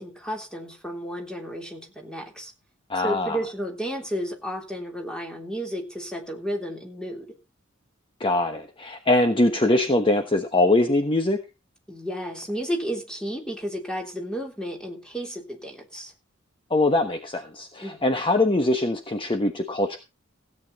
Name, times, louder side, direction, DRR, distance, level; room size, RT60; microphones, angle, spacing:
voice 1, 0.0-2.5 3.0-7.3 11.9-16.1 17.8-18.0, equal, 5° left, 1 dB, 3.4 m, -32 dB
voice 2, 2.9-3.4 8.2-11.4 16.7-20.0, left 2 dB, 25° left, 6 dB, 1.1 m, -22 dB
16.5 x 8.9 x 4.1 m, 0.28 s
head